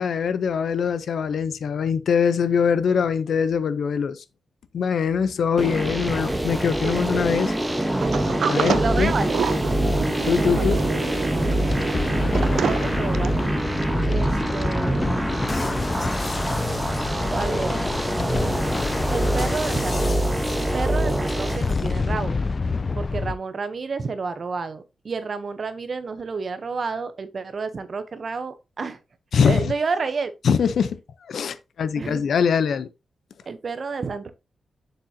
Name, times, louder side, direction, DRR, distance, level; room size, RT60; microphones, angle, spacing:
voice 1, 0.0-4.2 4.7-7.5 8.5-9.1 9.8-10.0 10.3-10.8 29.3-29.7 30.4-31.0 31.3-32.9, left 6 dB, 60° left, 0.7 m, -23 dB
sound 1, 5.6-21.6, right 1 dB, 5° right, 1.1 m, -24 dB
voice 2, 6.8-7.3 8.5-9.4 10.4-10.8 12.1-13.6 14.1-15.5 17.3-17.8 19.1-22.4 23.0-29.0 29.4-30.3 32.0-32.3 33.5-34.3, right 4 dB, 35° right, 0.9 m, -30 dB
Sliding door, 8.0-13.4, right 7 dB, 65° right, 0.7 m, -29 dB
sound 2, 11.7-23.3, left 4 dB, 25° left, 0.4 m, -29 dB
7.5 x 7.1 x 2.8 m
wide cardioid pair, 170°, 0 cm